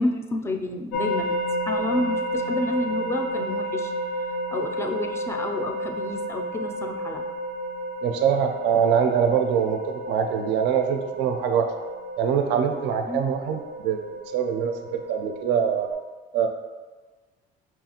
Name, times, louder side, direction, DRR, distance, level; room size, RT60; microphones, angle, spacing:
voice 1, 0.0-1.4 1.7-3.9 4.5-7.2 13.1-13.2, left 2 dB, 15° left, 4 dB, 0.3 m, -29 dB
sound 1, 0.9-15.9, equal, 80° left, 0.6 m, -31 dB
voice 2, 8.0-11.7 12.2-15.9 16.3-16.5, right 7 dB, 70° right, 5 dB, 0.4 m, -24 dB
5.6 x 2.4 x 2.8 m, 1.3 s
cardioid pair, 130°, 19 cm